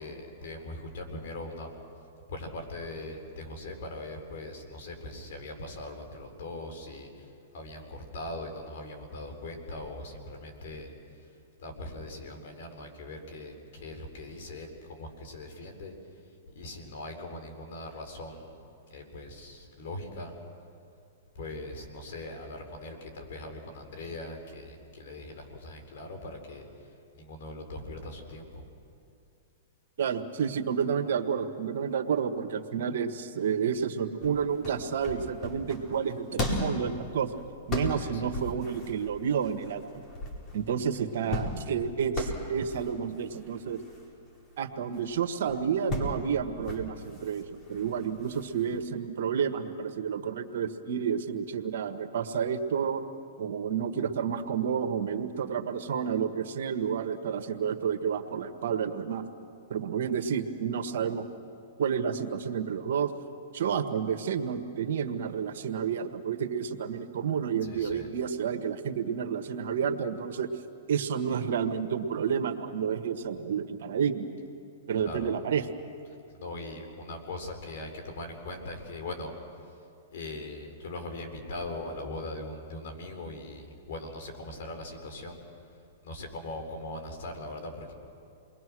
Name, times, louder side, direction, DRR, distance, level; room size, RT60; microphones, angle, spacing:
voice 1, 0.0-1.7 2.3-15.9 16.2-18.6 18.9-20.3 21.3-28.7 37.9-38.4 67.6-68.1 75.0-75.4 76.0-79.3 79.6-79.8 80.1-85.4 86.0-87.9, left 2 dB, 65° left, 5 dB, 4.4 m, -41 dB
voice 2, 30.0-37.3 37.7-39.8 40.5-43.8 44.6-53.0 53.4-59.2 59.7-61.2 61.8-63.1 63.5-70.5 70.9-74.3 74.9-75.6, right 7 dB, 70° right, 8 dB, 1.6 m, -30 dB
sound 1, 34.2-48.9, left 1 dB, 30° left, 4.5 m, -37 dB
28.5 x 21.5 x 6.2 m, 2.5 s
hypercardioid pair, 135°, 0 cm